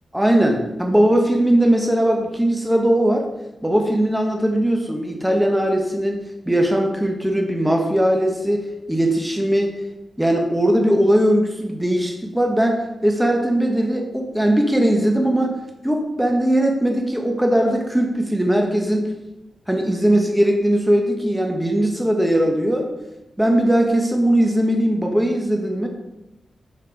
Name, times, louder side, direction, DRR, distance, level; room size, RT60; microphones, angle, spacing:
voice 1, 0.1-3.3 3.6-9.7 10.2-15.5 15.8-19.1 19.7-22.9 23.4-25.9, right 1 dB, 5° right, 2 dB, 1.0 m, -19 dB
7.0 x 4.3 x 5.1 m, 0.96 s
cardioid pair, 85°, 0 cm